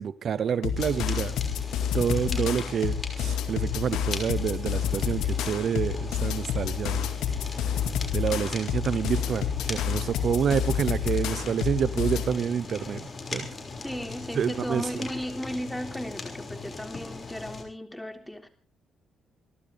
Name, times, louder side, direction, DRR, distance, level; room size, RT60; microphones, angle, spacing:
voice 1, 0.0-1.4 1.9-7.1 7.6-7.8 8.1-13.5 14.3-14.9, right 7 dB, 60° right, 15 dB, 0.8 m, -28 dB
sound 1, 0.6-12.3, left 8 dB, 85° left, 2.2 m, -29 dB
Fire, 0.8-17.6, left 3 dB, 30° left, 6.0 m, -39 dB
voice 2, 13.8-18.5, equal, 5° left, 5 dB, 3.4 m, -35 dB
29.0 x 12.5 x 3.5 m, 0.35 s
cardioid pair, 90°, 0 cm